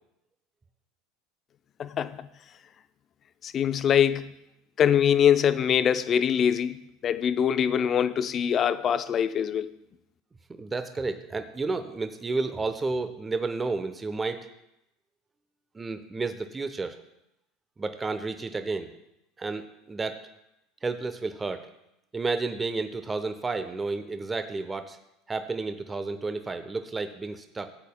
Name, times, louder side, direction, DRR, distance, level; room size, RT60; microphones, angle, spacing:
voice 1, 1.8-2.3 3.4-4.3 4.8-9.7, left 8 dB, 40° left, 0.5 m, -23 dB
voice 2, 10.5-14.5 15.7-17.0 17.8-18.9 19.4-20.2 20.8-21.7 22.1-25.0 25.3-27.7, right 3 dB, 20° right, 0.7 m, -31 dB
14.5 x 8.2 x 2.3 m
hypercardioid pair, 80°, 0 cm